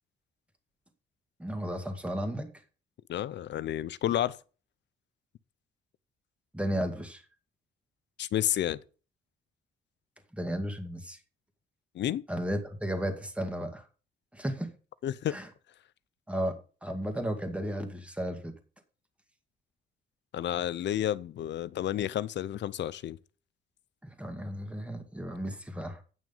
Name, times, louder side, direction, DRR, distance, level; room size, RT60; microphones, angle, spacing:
voice 1, 1.4-2.5 6.5-7.2 10.3-11.2 12.3-13.8 14.3-14.7 15.3-15.5 16.3-18.5 24.0-26.0, equal, 5° right, 2.1 m, -34 dB
voice 2, 3.1-4.4 8.2-8.8 11.9-12.2 15.0-15.4 20.3-23.2, left 11 dB, 65° left, 0.6 m, -30 dB
9.2 x 6.1 x 5.5 m
cardioid pair, 90°, 20 cm